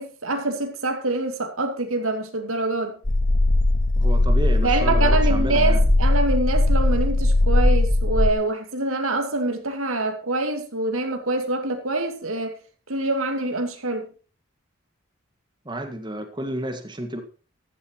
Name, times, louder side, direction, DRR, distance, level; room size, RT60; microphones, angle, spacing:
voice 1, 0.0-3.0 4.6-12.6 12.9-14.1, right 2 dB, 80° right, 2.6 m, -25 dB
sound 1, 3.1-8.3, left 2 dB, 35° left, 0.9 m, -19 dB
voice 2, 4.0-5.8 15.7-17.2, right 1 dB, 20° right, 2.0 m, -31 dB
15.0 x 12.5 x 3.1 m
head